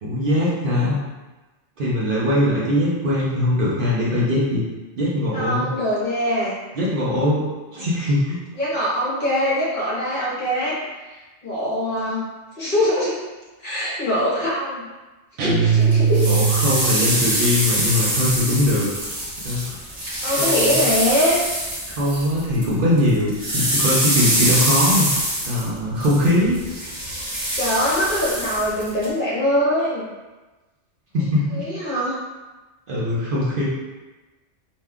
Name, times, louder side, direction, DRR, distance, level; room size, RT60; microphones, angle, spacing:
voice 1, 0.0-1.0 1.8-4.6 4.9-5.7 6.7-8.4 16.3-18.9 19.4-19.8 20.4-20.8 21.9-25.1 25.5-26.6 31.1-31.7 32.9-33.6, left 1 dB, 55° right, -7 dB, 0.8 m, -21 dB
voice 2, 5.3-6.5 8.6-10.8 11.1-12.2 12.6-13.2 13.6-14.8 15.4-16.3 20.2-21.4 27.6-30.1 31.5-32.2, left 1 dB, 45° left, -7 dB, 0.9 m, -23 dB
sound 1, 15.4-17.1, right 6 dB, 80° right, 0.9 m, -19 dB
sound 2, 15.9-22.7 23.0-29.1, right 1 dB, 40° right, 1.4 m, -24 dB
2.7 x 2.2 x 3.4 m, 1.2 s
omnidirectional pair, 1.2 m